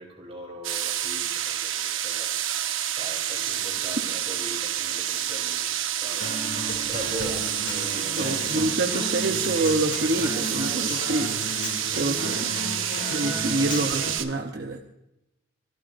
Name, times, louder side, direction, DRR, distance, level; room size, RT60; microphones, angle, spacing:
voice 1, 0.0-2.3 2.9-6.4 6.9-8.6, right 1 dB, 30° right, 1 dB, 3.7 m, -39 dB
sound 1, 0.6-14.3, right 11 dB, 85° right, 0.9 m, -29 dB
Human voice / Acoustic guitar, 6.2-14.2, left 2 dB, 65° left, 2.7 m, -34 dB
voice 2, 8.2-11.4 11.8-12.7 13.1-14.8, right 2 dB, 55° right, 3 dB, 0.9 m, -27 dB
26.5 x 13.0 x 2.6 m, 0.87 s
head